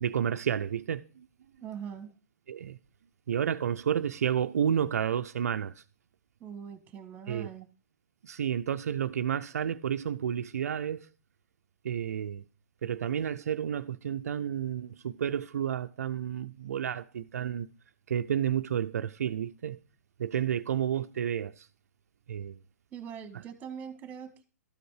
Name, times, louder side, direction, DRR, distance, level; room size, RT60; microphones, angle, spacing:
voice 1, 0.0-1.3 2.5-2.8 3.3-5.8 7.3-7.5 8.2-11.1 11.8-12.4 12.8-17.7 18.1-19.8 20.2-21.7 22.3-22.6, right 9 dB, 70° right, 0.4 m, -31 dB
voice 2, 1.6-2.1 6.4-7.7 22.9-24.4, right 8 dB, 20° right, 1.4 m, -42 dB
12.5 x 5.1 x 4.8 m
hypercardioid pair, 130°, 9 cm